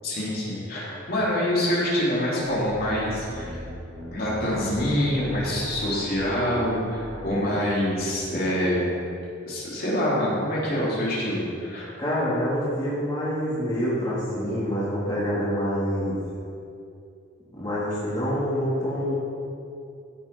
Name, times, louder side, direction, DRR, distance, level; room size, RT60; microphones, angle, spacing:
voice 1, 0.0-3.6 4.1-8.9 9.4-11.9, left 1 dB, 50° left, -7 dB, 3.3 m, -26 dB
sound 1, 2.4-7.7, equal, 40° right, 3.3 m, -39 dB
voice 2, 12.0-16.2 17.5-19.1, equal, 20° left, -9 dB, 2.9 m, -26 dB
15.0 x 7.5 x 5.4 m, 2.6 s
head